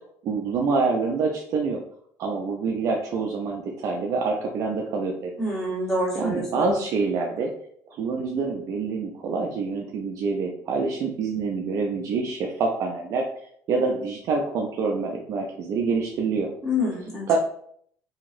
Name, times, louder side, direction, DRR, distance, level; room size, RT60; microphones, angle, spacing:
voice 1, 0.2-1.8 2.2-5.3 6.1-7.5 8.0-13.3 13.7-16.5 17.3-17.4, right 4 dB, 55° right, 1 dB, 0.5 m, -26 dB
voice 2, 5.4-6.7 16.6-17.3, left 1 dB, 10° left, -6 dB, 1.5 m, -27 dB
2.9 x 2.8 x 2.5 m, 0.63 s
cardioid pair, 110°, 6 cm